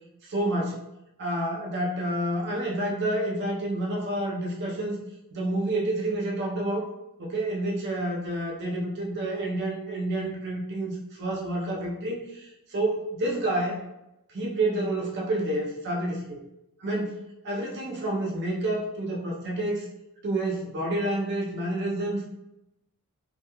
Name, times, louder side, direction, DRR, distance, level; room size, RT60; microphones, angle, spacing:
voice 1, 0.2-0.8 1.2-5.0 5.3-6.8 7.2-13.8 14.3-16.2 16.8-17.2 17.4-19.9 20.2-22.2, right 1 dB, 50° right, -2 dB, 0.5 m, -29 dB
2.8 x 2.3 x 2.2 m, 0.88 s
head